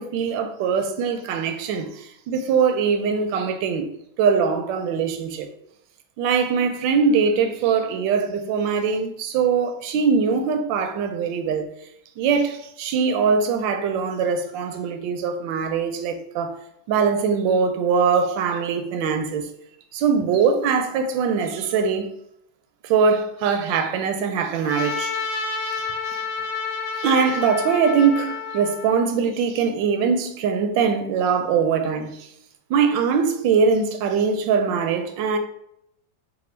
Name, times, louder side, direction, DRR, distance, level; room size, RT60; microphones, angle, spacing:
voice 1, 0.0-3.9 4.2-5.5 6.2-11.7 12.2-16.6 16.9-19.5 19.9-22.1 22.8-25.1 25.6-26.2 26.9-32.2 32.7-35.4, right 6 dB, 80° right, 1.3 m, -22 dB
Trumpet, 24.6-29.1, left 5 dB, 75° left, 1.1 m, -29 dB
4.2 x 2.2 x 4.3 m
omnidirectional pair, 2.0 m